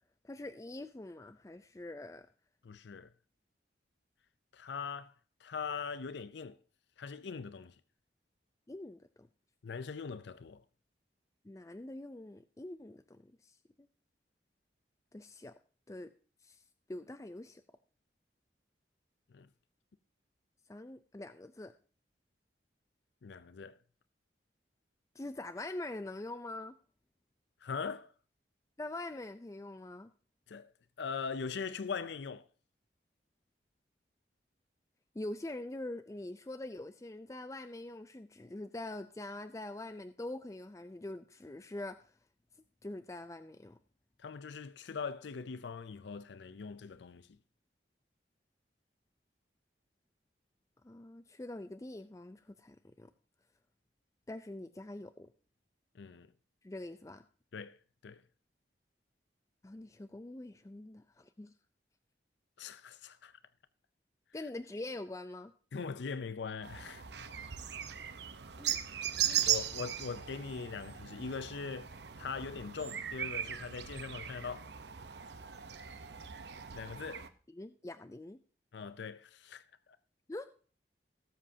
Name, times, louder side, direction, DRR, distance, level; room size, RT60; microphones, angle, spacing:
voice 1, 0.2-2.3 8.7-9.3 11.4-13.9 15.1-15.5 15.9-16.1 16.4-16.6 16.9-17.6 20.7-21.7 25.1-26.8 28.8-30.1 35.1-42.1 42.8-43.8 50.8-53.1 54.3-55.3 56.6-57.2 59.6-61.5 64.3-65.5 68.6-68.8 69.2-69.5 77.5-78.4 80.3-80.6, left 2 dB, 15° left, 0.4 m, -44 dB
voice 2, 2.6-3.1 4.5-5.1 5.4-6.6 7.0-7.8 9.6-10.6 19.3-19.5 23.2-23.8 27.6-28.1 30.5-30.7 31.0-32.5 44.2-47.4 55.9-56.3 57.5-57.8 58.0-58.2 62.6-63.3 65.7-67.3 69.4-71.9 72.2-74.7 76.7-77.3 78.7-79.6, left 5 dB, 75° left, 0.5 m, -41 dB
sound 1, 66.6-77.3, right 10 dB, 70° right, 0.8 m, -38 dB
18.0 x 7.6 x 2.7 m
head